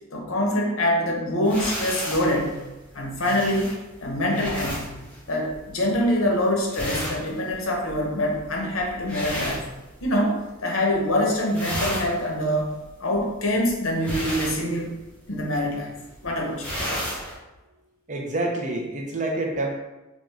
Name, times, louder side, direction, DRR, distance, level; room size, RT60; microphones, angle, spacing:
voice 1, 0.1-2.6 2.9-3.7 4.0-5.0 5.3-9.7 10.0-12.7 13.0-14.9 15.3-15.9 16.2-16.7, left 1 dB, 75° left, 0 dB, 0.8 m, -25 dB
sound 1, 1.4-10.4 10.7-11.1 11.4-17.3, equal, 5° left, 1.0 m, -34 dB
voice 2, 18.1-19.8, right 2 dB, 35° right, 0 dB, 0.5 m, -27 dB
3.5 x 2.5 x 3.2 m, 1.0 s
head